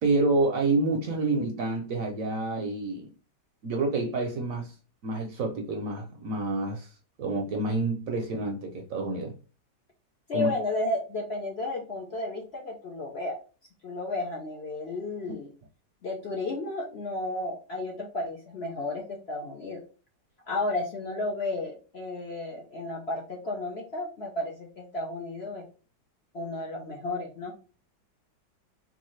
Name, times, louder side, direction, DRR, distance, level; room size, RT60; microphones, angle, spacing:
voice 1, 0.0-3.1 3.6-4.7 5.0-6.9 7.2-9.3 10.3-10.5, right 2 dB, 65° right, 0.9 m, -28 dB
voice 2, 10.3-13.4 13.8-15.5 16.0-19.8 20.4-25.6 26.3-27.5, left 2 dB, 60° left, 0.7 m, -33 dB
3.8 x 2.4 x 3.1 m
omnidirectional pair, 1.9 m